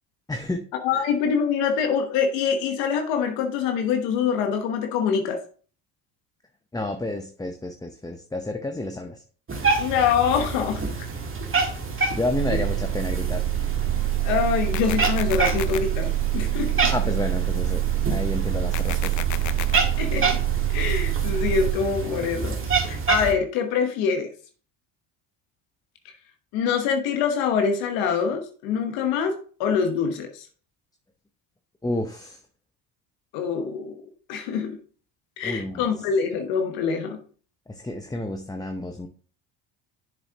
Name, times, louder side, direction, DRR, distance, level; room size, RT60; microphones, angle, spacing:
voice 1, 0.3-0.7 0.9-1.1 6.7-9.2 12.1-13.4 16.9-19.1 31.8-32.4 35.4-35.9 37.7-39.1, left 2 dB, 10° left, 5 dB, 0.7 m, -30 dB
voice 2, 0.8-5.4 9.8-10.9 12.5-12.6 14.2-16.9 20.0-20.4 20.7-24.3 26.5-30.5 33.3-34.0 34.3-34.8 35.4-37.2, left 6 dB, 80° left, 5 dB, 1.1 m, -25 dB
Cat, 9.5-23.3, right 4 dB, 30° right, 1.7 m, -28 dB
sound 1, 12.3-21.7, right 17 dB, 45° right, 1.9 m, -26 dB
sound 2, 14.7-15.8 18.7-19.8, left 13 dB, 45° left, 0.5 m, -33 dB
7.3 x 6.9 x 2.9 m, 0.42 s
supercardioid pair, 75°, 44 cm